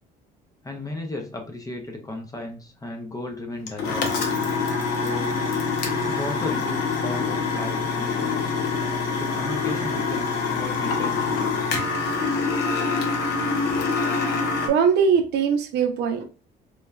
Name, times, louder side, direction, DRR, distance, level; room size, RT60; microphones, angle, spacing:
voice 1, 0.6-4.1 4.9-5.4 6.1-8.5 9.1-11.5, left 2 dB, 20° left, 0.5 m, -35 dB
sound 1, 3.7-14.7, left 4 dB, 75° left, 0.7 m, -25 dB
voice 2, 14.6-16.2, right 6 dB, 75° right, 0.5 m, -21 dB
3.1 x 2.2 x 2.3 m
cardioid pair, 110°, 17 cm